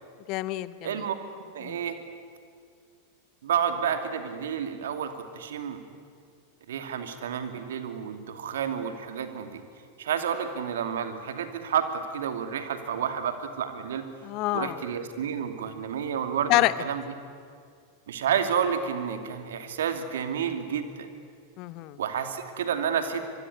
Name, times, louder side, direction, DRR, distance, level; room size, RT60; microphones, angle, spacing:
voice 1, 0.3-1.1 1.6-1.8 14.2-14.8 16.5-16.7 21.6-22.0, left 18 dB, 45° left, 16 dB, 0.9 m, -27 dB
voice 2, 0.8-1.1 1.5-2.0 3.4-5.8 6.7-9.6 10.0-14.1 14.5-17.0 18.1-21.1 22.0-23.2, right 8 dB, 65° right, 8 dB, 2.5 m, -30 dB
25.5 x 22.0 x 9.8 m, 2.2 s
figure-of-eight pair, 90°, 0 cm